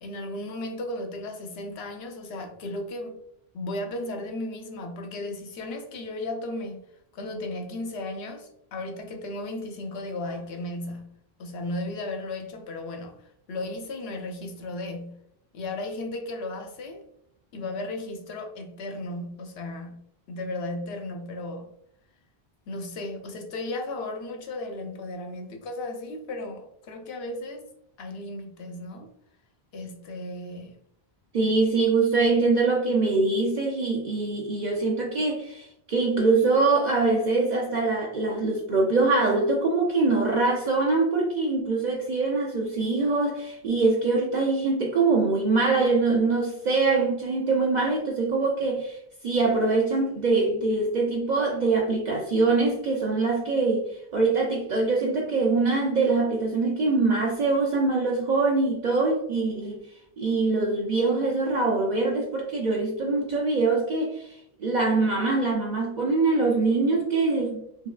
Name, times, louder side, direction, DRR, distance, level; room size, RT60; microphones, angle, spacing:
voice 1, 0.0-3.2 3.5-6.8 7.1-15.3 15.5-17.0 17.5-21.7 22.7-27.7 28.0-29.1 29.7-30.7, left 2 dB, 80° left, 0.9 m, -35 dB
voice 2, 31.3-49.0 49.2-59.8 60.2-67.9, right 3 dB, 55° right, 0.6 m, -23 dB
4.5 x 2.3 x 2.3 m
omnidirectional pair, 1.0 m